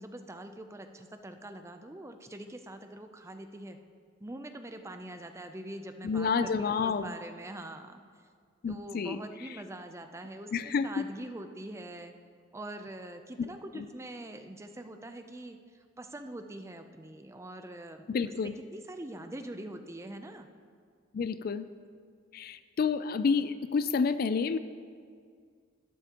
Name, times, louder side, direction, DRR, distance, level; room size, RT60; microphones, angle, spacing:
voice 1, 0.0-3.8 4.2-8.0 8.7-12.1 12.5-15.6 16.0-20.5, right 1 dB, 15° right, 7 dB, 0.5 m, -44 dB
voice 2, 6.0-7.1 8.6-9.2 10.5-11.0 13.7-13.9 18.1-18.5 21.1-21.7 22.3-24.6, left 5 dB, 50° left, 13 dB, 0.3 m, -29 dB
12.5 x 12.0 x 2.9 m, 2.1 s
head